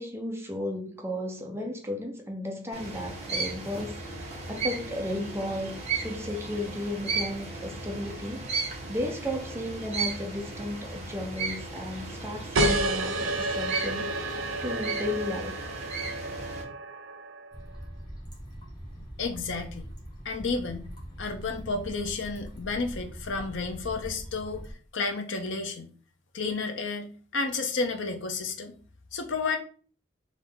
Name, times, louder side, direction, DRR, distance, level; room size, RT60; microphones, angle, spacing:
voice 1, 0.0-8.5 8.9-15.6, left 1 dB, 15° right, 0.7 m, -34 dB
sound 1, 2.7-16.6, right 4 dB, 35° right, 1.4 m, -35 dB
sound 2, 12.5-17.7, right 2 dB, 85° right, 0.6 m, -30 dB
sound 3, 17.5-24.7, equal, 20° left, 1.3 m, -42 dB
voice 2, 19.2-19.9 20.2-20.9 21.2-24.6 24.9-25.9 26.3-28.7 29.1-29.6, left 4 dB, 70° left, 0.7 m, -31 dB
3.6 x 3.2 x 3.8 m
head